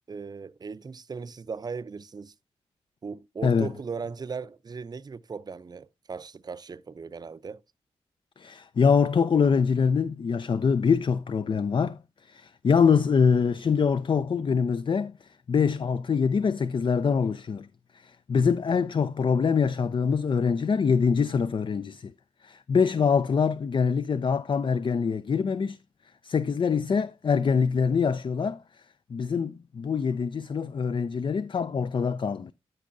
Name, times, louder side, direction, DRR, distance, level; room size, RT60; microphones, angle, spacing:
voice 1, 0.1-2.3 3.0-7.6 18.4-18.5, right 5 dB, 35° right, 0.4 m, -38 dB
voice 2, 8.4-17.7 17.9-22.1 22.4-25.8 26.2-28.8 29.1-32.5, left 6 dB, 45° left, 0.4 m, -24 dB
12.0 x 5.3 x 2.6 m
cardioid pair, 45°, 12 cm